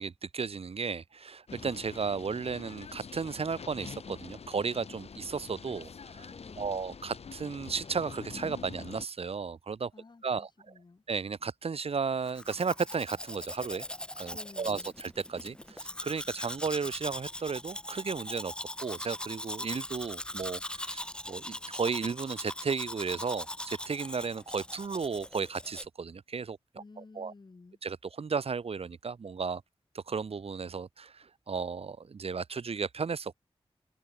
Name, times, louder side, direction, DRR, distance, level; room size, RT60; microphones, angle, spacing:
voice 1, 0.0-6.3 6.6-9.9 10.2-10.5 11.1-13.9 14.2-18.5 18.8-27.3 27.8-29.6 29.9-33.3, right 5 dB, 65° right, 2.0 m, -34 dB
sound 1, 1.5-9.1, left 5 dB, 75° left, 1.7 m, -46 dB
voice 2, 6.3-6.9 9.9-11.0 14.3-15.0 26.7-27.8, left 3 dB, 45° left, 7.5 m, -53 dB
Domestic sounds home sounds, 12.2-25.9, left 1 dB, 10° left, 0.7 m, -40 dB
wide cardioid pair, 120°, 11 cm